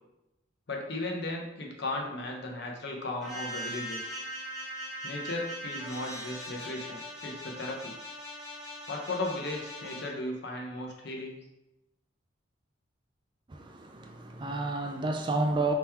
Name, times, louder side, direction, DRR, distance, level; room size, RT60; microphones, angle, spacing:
voice 1, 0.7-4.1 5.0-7.9 8.9-11.4, left 2 dB, 60° left, 0.8 m, -36 dB
sound 1, 3.2-10.1, equal, ahead, 1.3 m, -40 dB
voice 2, 13.5-15.7, right 2 dB, 25° right, 0.3 m, -30 dB
3.6 x 3.0 x 4.3 m
head